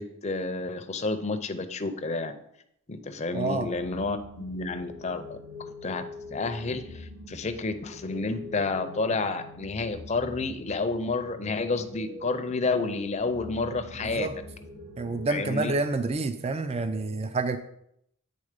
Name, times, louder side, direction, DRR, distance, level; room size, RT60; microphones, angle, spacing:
voice 1, 0.0-2.3 2.9-6.0 6.3-14.3 15.3-15.8, left 3 dB, 30° left, 8 dB, 0.5 m, -30 dB
voice 2, 3.3-3.7 14.1-14.3 15.0-17.6, right 3 dB, 30° right, 9 dB, 0.3 m, -28 dB
sound 1, 3.4-16.1, left 2 dB, 75° right, 2.7 m, -44 dB
8.5 x 3.9 x 5.0 m, 0.75 s
head